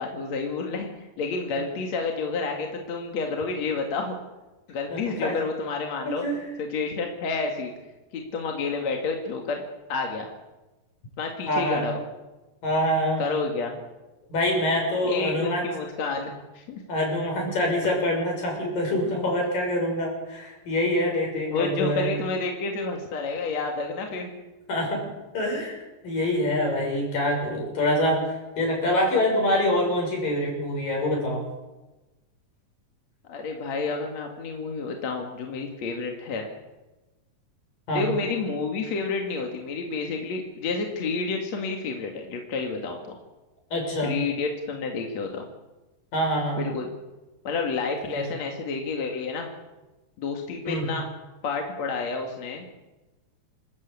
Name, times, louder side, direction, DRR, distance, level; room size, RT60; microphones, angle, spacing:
voice 1, 0.0-4.1 4.7-6.2 6.6-7.7 8.1-9.6 9.9-10.3 11.2-12.0 13.2-13.7 15.0-16.8 21.5-24.4 33.3-36.5 37.9-43.2 44.0-45.5 46.6-46.9 47.4-49.5 50.2-51.1 51.4-52.6, left 4 dB, 55° left, 2 dB, 3.0 m, -30 dB
voice 2, 4.9-5.3 6.2-6.4 11.5-11.8 12.6-13.2 14.3-15.6 16.9-22.1 24.7-25.0 25.3-25.8 26.0-31.4 37.9-38.0 43.7-44.1 46.1-46.6 48.1-48.2 50.6-50.9, left 1 dB, 70° left, 0 dB, 8.3 m, -25 dB
28.0 x 13.5 x 8.4 m, 1.1 s
omnidirectional pair, 4.0 m